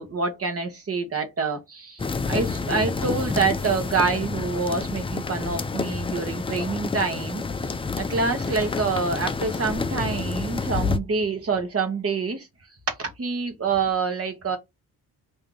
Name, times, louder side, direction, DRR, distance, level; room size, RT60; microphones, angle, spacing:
voice 1, 0.0-12.5 13.0-14.6, right 4 dB, 40° right, 1.1 m, -27 dB
sound 1, 2.0-11.0, left 4 dB, 15° left, 0.4 m, -29 dB
3.3 x 2.7 x 3.8 m
cardioid pair, 95°, 35 cm